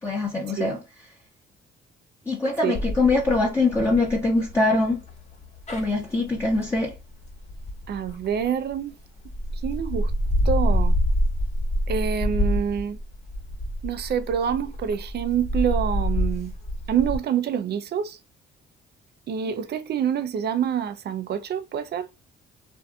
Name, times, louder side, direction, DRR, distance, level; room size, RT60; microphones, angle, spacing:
voice 1, 0.0-0.8 2.3-5.0 5.7-6.9, left 2 dB, 15° left, 0.9 m, -23 dB
sound 1, 2.7-8.7 9.2-17.2, equal, 35° left, 1.2 m, -27 dB
voice 2, 7.9-9.0 9.5-10.1 10.4-11.0 11.9-13.0 13.8-16.5 16.9-18.2 19.3-22.1, right 8 dB, 55° right, 0.5 m, -26 dB
2.6 x 2.4 x 2.3 m
cardioid pair, 90°, 20 cm